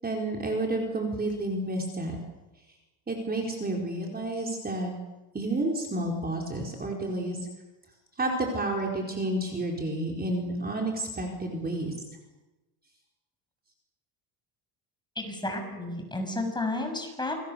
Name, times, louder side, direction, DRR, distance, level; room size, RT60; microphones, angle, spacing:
voice 1, 0.0-2.2 3.1-4.9 5.3-7.4 8.2-11.9, right 2 dB, 20° right, 0 dB, 4.6 m, -30 dB
voice 2, 15.2-17.4, left 2 dB, 10° left, 4 dB, 6.6 m, -32 dB
28.5 x 22.0 x 7.0 m, 1.1 s
cardioid pair, 120°, 43 cm